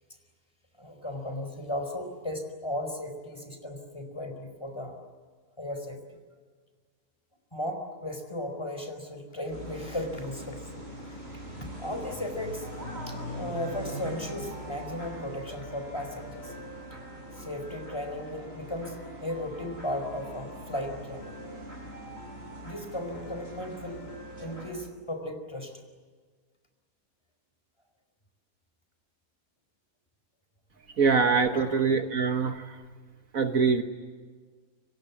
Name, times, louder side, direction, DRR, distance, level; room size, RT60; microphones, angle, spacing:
voice 1, 0.8-5.0 5.6-6.0 7.5-11.2 11.6-12.7 13.1-16.5 17.4-21.3 22.6-24.0 24.4-25.7 31.5-31.6, left 1 dB, 15° left, 5 dB, 4.8 m, -36 dB
sound 1, 9.5-24.7, equal, 40° right, 7.4 m, -41 dB
voice 2, 31.0-32.8 33.3-33.8, right 5 dB, 60° right, 6 dB, 1.6 m, -24 dB
30.0 x 25.0 x 7.3 m, 1.5 s
omnidirectional pair, 1.7 m